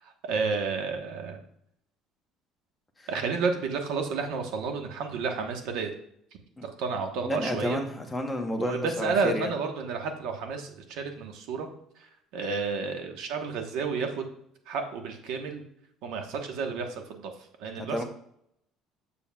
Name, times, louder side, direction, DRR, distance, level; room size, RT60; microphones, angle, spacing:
voice 1, 0.0-1.4 3.1-5.9 6.6-7.8 8.6-11.7 12.0-14.2 14.7-15.6 16.0-17.2 17.6-18.0, right 5 dB, 75° right, 4 dB, 1.1 m, -31 dB
voice 2, 7.2-9.5 17.7-18.0, left 1 dB, 5° left, 2 dB, 0.9 m, -31 dB
7.0 x 6.9 x 2.3 m, 0.71 s
cardioid pair, 145°, 0 cm